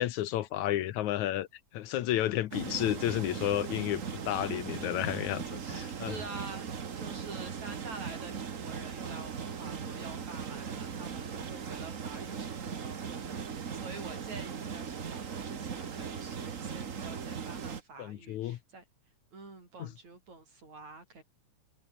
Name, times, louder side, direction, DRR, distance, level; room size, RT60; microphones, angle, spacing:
voice 1, 0.0-1.5 1.7-5.6 6.0-6.1 18.0-18.6 19.8-19.9, left 13 dB, 80° left, 2.4 m, -31 dB
sound 1, 2.5-17.8, right 6 dB, 45° right, 1.1 m, -39 dB
voice 2, 5.6-18.9 19.3-21.2, right 3 dB, 70° right, 9.1 m, -48 dB
omnidirectional pair, 3.4 m